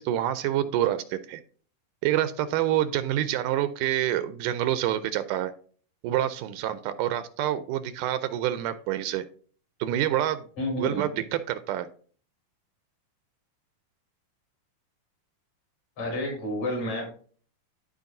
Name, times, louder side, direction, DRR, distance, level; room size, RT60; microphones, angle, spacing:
voice 1, 0.0-1.4 2.0-5.5 6.0-9.2 9.8-10.5 10.8-11.9, right 12 dB, 80° right, 12 dB, 2.1 m, -27 dB
voice 2, 10.6-11.1 16.0-17.1, equal, 60° left, -1 dB, 5.5 m, -30 dB
13.5 x 4.6 x 2.6 m, 0.44 s
omnidirectional pair, 3.8 m